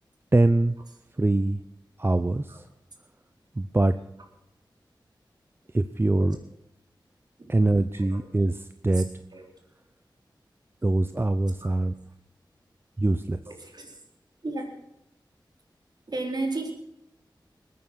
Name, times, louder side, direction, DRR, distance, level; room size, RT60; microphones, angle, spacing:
voice 1, 0.3-0.8 1.2-1.6 2.0-2.6 3.6-3.9 5.7-6.4 7.5-9.1 10.8-11.9 13.0-13.4, right 2 dB, 30° right, 10 dB, 0.7 m, -23 dB
voice 2, 13.5-14.0 14.4-14.7 16.1-16.7, right 2 dB, 55° right, 2 dB, 3.9 m, -33 dB
20.5 x 9.4 x 6.2 m, 0.84 s
wide cardioid pair, 60°, 8 cm